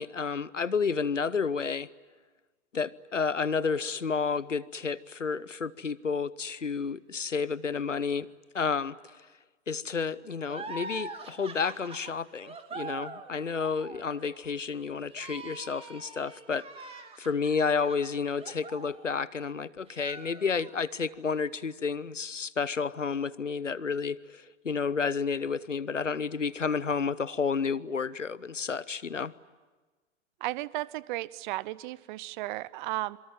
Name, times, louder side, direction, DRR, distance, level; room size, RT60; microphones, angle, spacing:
voice 1, 0.0-1.9 2.7-8.3 8.5-9.0 9.7-29.3, left 5 dB, 90° left, 19 dB, 0.8 m, -31 dB
sound 1, 10.4-19.5 19.9-20.9, right 4 dB, 15° right, 2.6 m, -44 dB
voice 2, 30.4-33.2, right 18 dB, 40° right, 21 dB, 0.8 m, -34 dB
26.5 x 23.5 x 9.2 m, 1.3 s
figure-of-eight pair, 95°, 36 cm